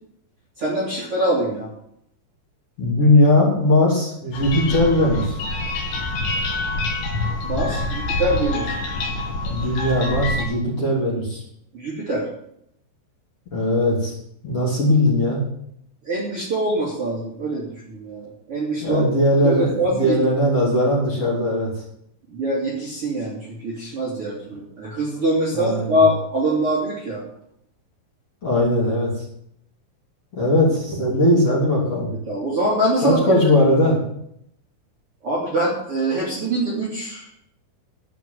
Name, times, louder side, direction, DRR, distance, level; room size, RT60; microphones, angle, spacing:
voice 1, 0.6-1.7 7.4-8.8 11.7-12.2 16.0-19.1 19.4-20.2 20.6-20.7 22.3-27.2 32.3-33.4 35.2-37.3, right 1 dB, 35° right, -6 dB, 2.7 m, -24 dB
voice 2, 2.8-5.4 9.5-11.4 13.5-14.1 14.4-15.5 18.8-21.7 25.5-26.0 28.4-29.2 30.3-32.1 33.0-34.0, left 1 dB, 35° left, -5 dB, 3.4 m, -19 dB
sound 1, 4.3-10.4, left 2 dB, 70° left, 3.9 m, -26 dB
12.5 x 5.8 x 9.2 m, 0.74 s
omnidirectional pair, 5.8 m